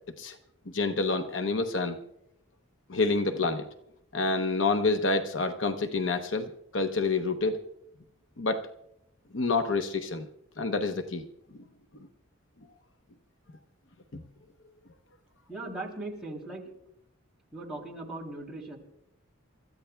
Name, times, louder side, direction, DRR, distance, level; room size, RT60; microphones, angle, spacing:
voice 1, 0.7-2.0 2.9-3.7 4.1-7.6 8.4-8.7 9.3-10.3 10.6-11.3 11.5-11.6, left 3 dB, 60° left, 6 dB, 0.8 m, -28 dB
voice 2, 15.5-16.7 17.5-18.8, right 2 dB, 5° right, -4 dB, 3.0 m, -39 dB
29.5 x 14.0 x 2.3 m, 0.79 s
head